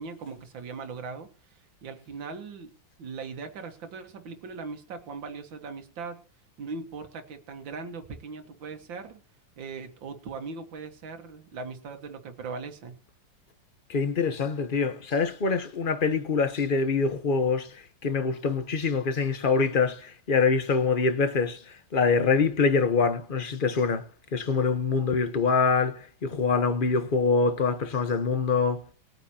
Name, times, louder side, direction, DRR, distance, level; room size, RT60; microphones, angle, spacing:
voice 1, 0.0-2.7 3.0-6.2 6.6-9.2 9.6-13.0, right 4 dB, 80° right, 2.2 m, -39 dB
voice 2, 13.9-28.8, left 4 dB, 35° left, 0.9 m, -25 dB
21.0 x 9.1 x 2.8 m
omnidirectional pair, 2.0 m